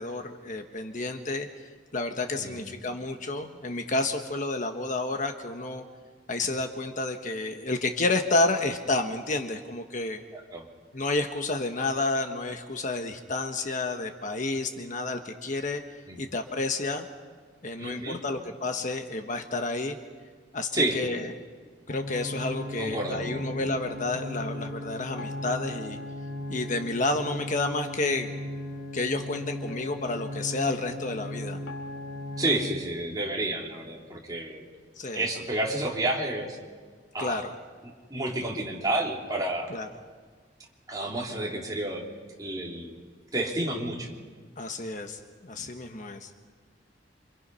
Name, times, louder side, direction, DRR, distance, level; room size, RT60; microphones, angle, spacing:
voice 1, 0.0-5.8 6.3-10.2 10.9-15.8 16.2-17.0 17.6-20.0 20.5-21.3 21.9-26.0 26.5-28.3 28.9-31.6 35.0-35.3 37.2-37.5 39.7-39.9 44.6-46.3, left 2 dB, 45° left, 6 dB, 1.3 m, -30 dB
voice 2, 10.3-10.7 16.1-16.2 17.8-18.2 20.7-21.0 22.8-23.4 32.4-34.6 35.1-36.6 37.1-37.4 37.8-39.7 40.9-42.0 42.4-43.0 43.3-44.1, right 1 dB, 20° right, -2 dB, 3.7 m, -30 dB
sound 1, 21.9-32.5, left 1 dB, 90° left, 2.8 m, -37 dB
28.0 x 26.5 x 5.7 m, 1.5 s
head